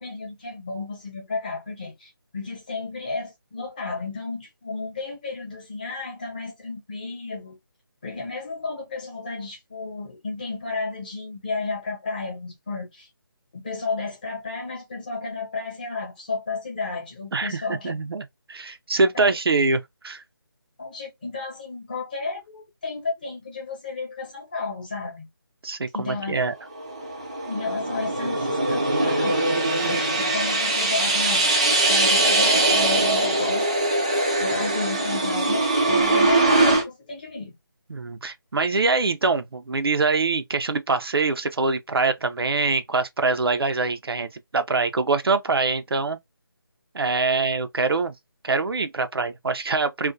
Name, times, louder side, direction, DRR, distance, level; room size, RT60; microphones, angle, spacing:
voice 1, 0.0-7.6 8.0-13.1 13.5-17.9 19.1-19.3 20.8-25.3 25.9-26.3 27.5-29.4 29.8-31.5 31.9-33.6 34.4-37.5, left 3 dB, 20° left, 0.9 m, -32 dB
voice 2, 17.3-20.2 25.6-26.5 37.9-46.2 46.9-48.1 48.4-50.1, right 3 dB, 90° right, 0.5 m, -24 dB
sound 1, 26.7-36.8, right 2 dB, 15° right, 0.3 m, -22 dB
2.4 x 2.1 x 2.5 m
figure-of-eight pair, 170°, 12 cm